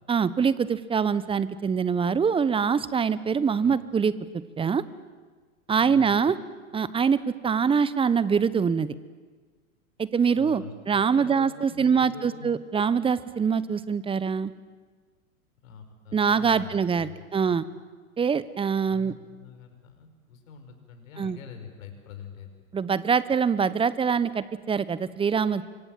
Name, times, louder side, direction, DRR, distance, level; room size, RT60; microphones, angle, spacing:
voice 1, 0.1-4.1 4.6-4.8 5.7-6.4 6.7-8.9 10.0-14.5 16.1-17.6 18.2-19.1 21.2-21.4 22.7-25.6, right 6 dB, 10° right, 17 dB, 1.0 m, -24 dB
voice 2, 5.8-6.2 10.4-12.5 15.6-17.6 18.9-22.5, left 6 dB, 65° left, 6 dB, 6.0 m, -45 dB
29.0 x 25.5 x 7.6 m, 1.4 s
hypercardioid pair, 105°, 44 cm